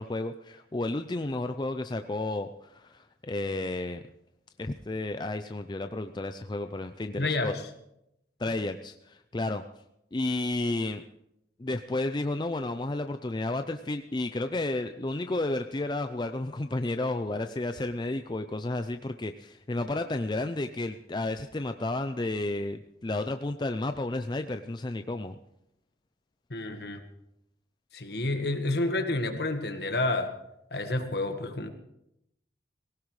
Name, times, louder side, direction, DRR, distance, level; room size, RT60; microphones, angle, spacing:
voice 1, 0.0-4.1 4.6-7.5 8.4-9.6 10.1-11.0 11.6-25.4, left 2 dB, 25° left, 8 dB, 0.4 m, -32 dB
voice 2, 7.2-7.6 26.5-27.0 27.9-30.3 30.7-31.7, left 2 dB, 60° left, 6 dB, 1.5 m, -29 dB
19.0 x 17.0 x 3.2 m, 0.82 s
head